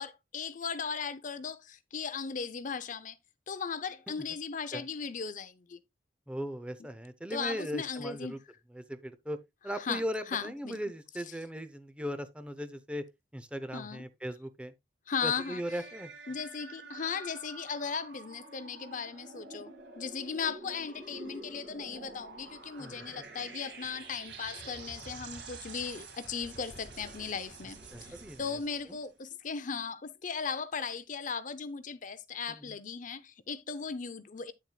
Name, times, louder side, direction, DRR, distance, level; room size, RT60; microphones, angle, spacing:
voice 1, 0.0-3.2 3.5-5.8 7.3-8.4 9.8-10.8 13.7-14.0 15.1-15.6 16.3-34.5, left 6 dB, 45° left, 0.6 m, -37 dB
voice 2, 6.3-8.4 8.7-9.4 9.6-13.1 13.3-14.7 15.2-16.1 22.8-22.9 27.9-28.4 28.9-29.0 32.5-32.7, equal, 5° right, 0.7 m, -38 dB
sound 1, 15.3-29.1, right 3 dB, 70° right, 2.1 m, -48 dB
9.6 x 7.4 x 2.3 m
head